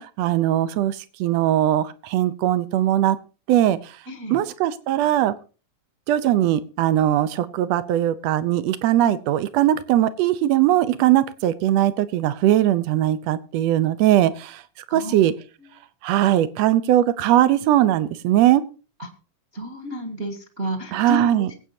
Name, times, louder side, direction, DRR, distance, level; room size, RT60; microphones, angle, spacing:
voice 1, 0.0-3.2 3.5-4.0 4.3-5.3 6.1-14.6 14.9-15.3 16.0-18.6 20.9-21.5, right 12 dB, 80° right, 15 dB, 1.5 m, -20 dB
voice 2, 4.1-4.4 14.9-15.2 19.0-19.1 19.5-21.5, equal, 30° right, 5 dB, 1.1 m, -32 dB
23.0 x 8.9 x 2.8 m, 0.35 s
omnidirectional pair, 4.0 m